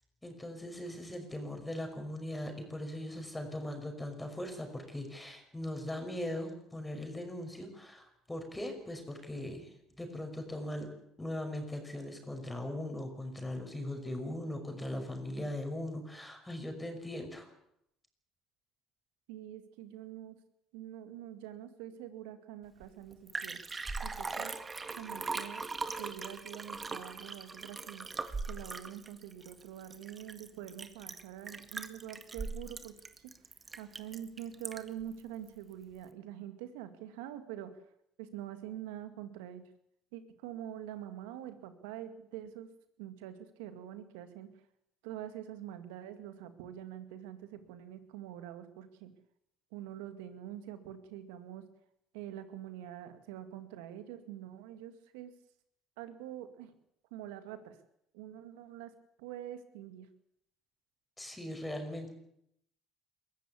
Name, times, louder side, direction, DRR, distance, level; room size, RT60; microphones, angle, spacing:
voice 1, 0.2-10.9 11.2-17.5 61.2-62.1, left 1 dB, 10° left, 4 dB, 5.7 m, -40 dB
voice 2, 19.3-20.4 20.7-23.6 24.0-24.5 24.9-25.6 26.0-28.1 28.4-32.9 33.8-37.7 38.2-39.6 40.1-42.7 43.0-44.5 45.0-49.1 49.7-51.6 52.1-55.3 56.0-56.7 57.1-57.7 58.1-58.9 59.2-60.1, right 11 dB, 85° right, 9 dB, 2.2 m, -45 dB
Liquid, 22.8-22.9 23.1-35.0 35.5-35.6, right 4 dB, 25° right, 1.9 m, -40 dB
22.0 x 14.5 x 8.4 m, 0.75 s
hypercardioid pair, 70°, 0 cm